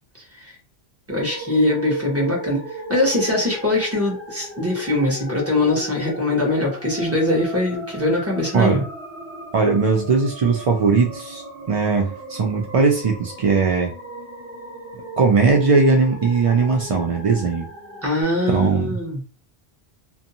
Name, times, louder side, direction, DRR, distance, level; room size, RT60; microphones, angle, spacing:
voice 1, 1.1-8.8 18.0-19.2, left 1 dB, 15° right, -3 dB, 0.9 m, -22 dB
sound 1, 1.1-18.2, right 1 dB, 45° right, 1.1 m, -36 dB
voice 2, 8.5-8.8 9.5-11.4 11.7-13.9 15.2-17.7 18.5-19.0, right 4 dB, 65° right, 1 dB, 0.3 m, -19 dB
2.5 x 2.2 x 2.7 m, 0.35 s
omnidirectional pair, 1.1 m